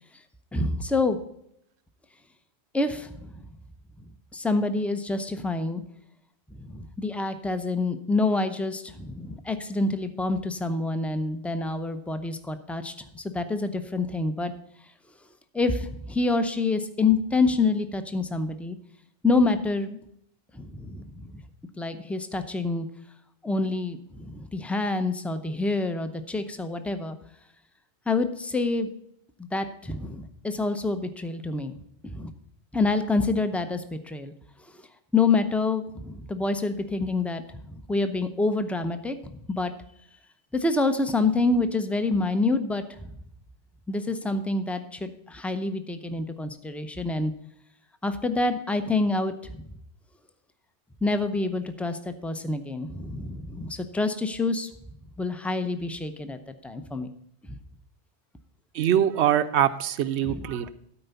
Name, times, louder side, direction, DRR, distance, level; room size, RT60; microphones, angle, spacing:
voice 1, 0.5-1.2 2.7-3.5 4.3-5.8 6.6-14.5 15.5-18.8 19.2-20.0 20.5-21.4 21.8-22.9 23.4-27.2 28.1-28.9 29.4-31.7 32.0-32.3 32.7-34.3 35.1-39.7 40.5-42.8 43.9-47.3 48.0-49.6 51.0-54.7 55.2-57.1 60.2-60.5, left 3 dB, ahead, 9 dB, 0.4 m, -27 dB
voice 2, 58.7-60.7, right 10 dB, 75° right, 12 dB, 0.9 m, -23 dB
13.0 x 4.6 x 6.8 m, 0.75 s
omnidirectional pair, 1.2 m